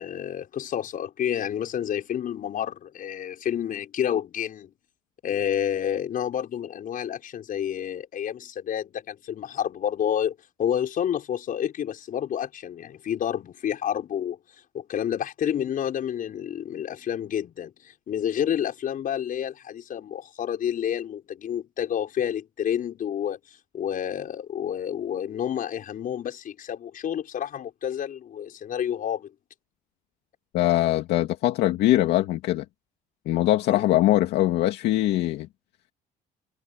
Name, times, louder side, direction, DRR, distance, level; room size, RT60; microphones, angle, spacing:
voice 1, 0.0-4.7 5.2-14.4 14.7-23.4 23.7-29.3 33.7-33.9, left 9 dB, 55° left, 6.1 m, -29 dB
voice 2, 30.5-32.6 33.3-35.5, left 15 dB, 85° left, 2.3 m, -22 dB
cardioid pair, 110°, 17 cm